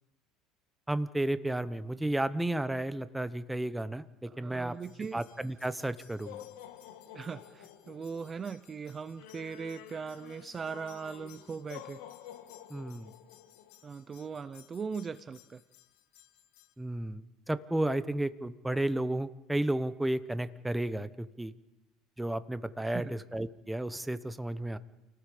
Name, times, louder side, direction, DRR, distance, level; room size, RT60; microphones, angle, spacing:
voice 1, 0.9-4.8 5.1-6.4 12.7-13.1 16.8-21.5 22.2-24.8, right 1 dB, 5° right, 13 dB, 0.9 m, -33 dB
voice 2, 4.3-5.2 7.1-12.0 13.8-15.6 22.9-23.2, right 5 dB, 25° right, 14 dB, 0.7 m, -39 dB
sound 1, 4.8-16.7, left 11 dB, 85° left, 1.7 m, -51 dB
29.5 x 18.5 x 5.1 m, 1.0 s
supercardioid pair, 120°, 0 cm